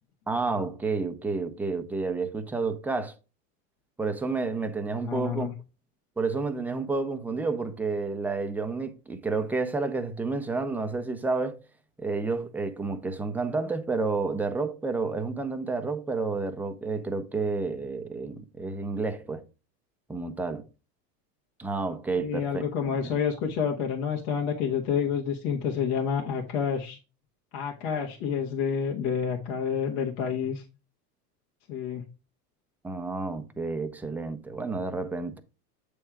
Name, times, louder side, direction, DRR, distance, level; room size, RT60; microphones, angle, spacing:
voice 1, 0.3-3.1 4.0-5.5 6.2-11.6 12.0-19.4 20.1-20.7 21.6-23.2 32.8-35.4, right 3 dB, 5° right, 0.5 m, -30 dB
voice 2, 4.9-5.5 22.2-27.0 27.5-30.6 31.7-32.0, left 7 dB, 60° left, 1.5 m, -29 dB
7.7 x 3.4 x 4.7 m
hypercardioid pair, 110°, 48 cm